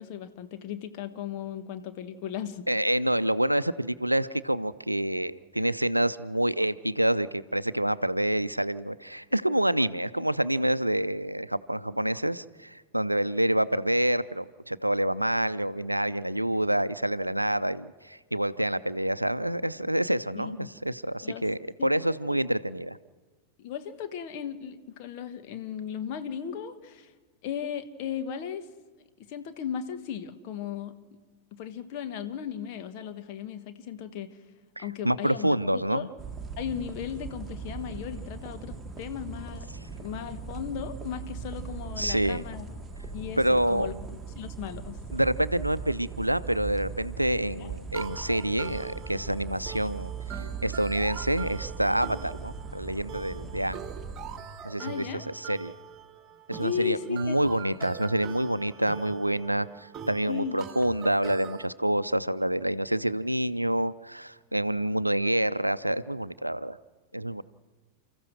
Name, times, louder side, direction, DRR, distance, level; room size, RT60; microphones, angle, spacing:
voice 1, 0.0-2.7 20.3-20.7 21.2-21.4 21.8-21.9 22.3-22.4 23.6-27.1 27.4-28.7 29.3-30.9 31.5-34.4 34.8-36.1 36.6-42.7 43.1-45.0 47.6-47.7 54.8-55.3 56.6-57.4 60.3-60.5, left 8 dB, 45° left, 9 dB, 1.4 m, -36 dB
voice 2, 2.7-23.0 34.8-36.1 42.0-42.5 43.4-43.9 45.1-53.8 54.6-55.7 56.5-66.8 67.1-67.4, right 1 dB, 85° right, 16 dB, 0.5 m, -27 dB
sound 1, 36.2-54.4, right 5 dB, 10° right, 1.9 m, -39 dB
sound 2, 47.9-61.7, right 8 dB, 25° right, 1.7 m, -43 dB
29.5 x 14.5 x 6.3 m, 1.4 s
figure-of-eight pair, 90°, 0 cm